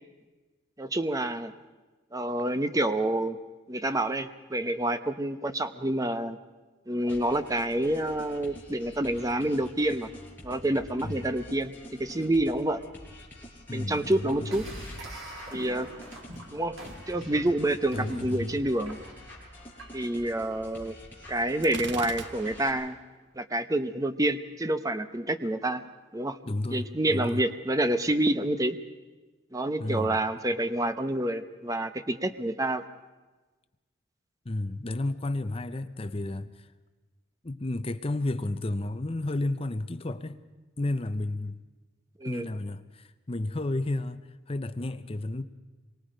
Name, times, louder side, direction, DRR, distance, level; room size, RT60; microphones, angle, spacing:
voice 1, 0.8-1.5 2.1-3.4 3.7-6.4 6.9-10.1 10.4-12.8 13.7-14.7 15.5-15.9 16.5-16.8 17.1-19.0 19.9-21.0 21.3-23.0 23.4-25.8 26.1-26.4 26.7-28.8 29.5-32.8 42.2-42.5, right 1 dB, 15° right, 0.8 m, -28 dB
sound 1, 7.1-22.7, left 1 dB, 10° left, 5.2 m, -47 dB
voice 2, 13.7-14.5 17.9-18.6 26.4-27.4 29.8-30.2 34.4-36.7 37.4-40.4 40.8-41.6 42.3-45.4, left 2 dB, 30° left, 0.7 m, -32 dB
sound 2, 14.5-20.3, right 1 dB, 85° right, 4.2 m, -44 dB
Gunshot gunfire, 21.6-22.9, right 6 dB, 60° right, 0.8 m, -40 dB
26.0 x 23.0 x 5.1 m
head